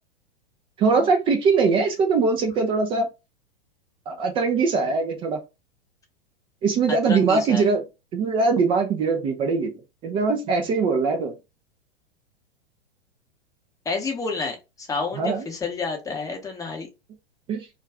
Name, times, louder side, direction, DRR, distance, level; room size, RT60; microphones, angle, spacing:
voice 1, 0.8-3.1 4.1-5.4 6.6-7.8 8.1-9.7 10.0-11.3 15.2-15.5 17.5-17.7, right 4 dB, 20° right, 0.3 m, -21 dB
voice 2, 6.9-7.7 13.8-16.9, left 4 dB, 10° left, 0.7 m, -29 dB
2.3 x 2.2 x 3.4 m
hypercardioid pair, 105°, 31 cm